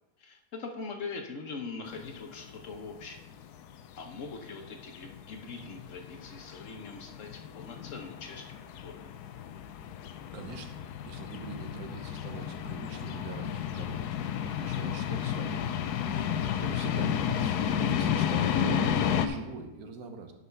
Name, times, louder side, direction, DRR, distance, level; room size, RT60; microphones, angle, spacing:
voice 1, 0.2-3.2 4.0-8.4 8.8-9.0, left 4 dB, 55° left, 4 dB, 1.1 m, -42 dB
sound 1, 1.9-19.3, left 8 dB, 90° left, 1.2 m, -32 dB
voice 2, 10.3-10.8 11.0-14.1 14.4-15.7 16.4-20.3, right 4 dB, 70° right, 5 dB, 1.4 m, -43 dB
8.1 x 5.5 x 5.7 m, 1.0 s
omnidirectional pair, 1.7 m